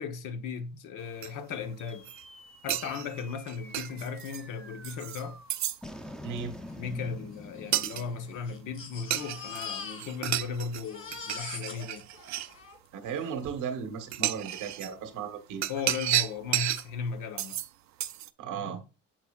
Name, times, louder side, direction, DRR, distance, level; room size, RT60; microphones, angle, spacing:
voice 1, 0.0-2.1 2.6-5.4 6.8-12.1 15.7-17.6, left 5 dB, 85° left, 1.0 m, -36 dB
sound 1, 1.2-1.3 1.9-2.2 2.7-4.4 4.8-5.2 5.5-5.8 7.7-8.0 9.1-9.7 9.9-10.8 11.1-12.5 13.4-13.5 14.1-14.9 15.6-16.8 17.4-17.7 18.0-18.3, right 13 dB, 65° right, 0.5 m, -32 dB
sound 2, 1.8-10.4, left 1 dB, 5° left, 0.6 m, -48 dB
voice 2, 6.2-6.6 12.9-15.6 18.4-18.8, right 7 dB, 85° right, 1.1 m, -36 dB
Crying sobbing, 6.4-6.5 6.7-6.8 7.5-10.4 10.7-13.3 14.1-14.2 14.6-14.7, left 6 dB, 45° left, 2.6 m, -43 dB
8.8 x 6.0 x 2.3 m
cardioid pair, 90°, 30 cm